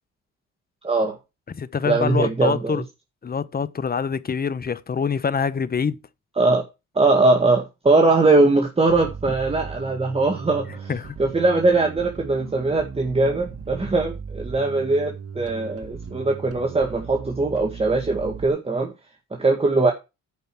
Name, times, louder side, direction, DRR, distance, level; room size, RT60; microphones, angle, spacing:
voice 1, 0.8-1.2 1.9-2.8 6.4-6.6 7.0-10.9 11.2-18.9 19.4-19.9, right 3 dB, 20° right, 1.9 m, -21 dB
voice 2, 1.5-2.8 3.2-6.0 10.9-11.1, left 6 dB, 30° left, 0.9 m, -25 dB
Bass guitar, 8.9-18.5, right 6 dB, 50° right, 1.9 m, -37 dB
9.4 x 5.4 x 6.1 m
cardioid pair, 90°, 30 cm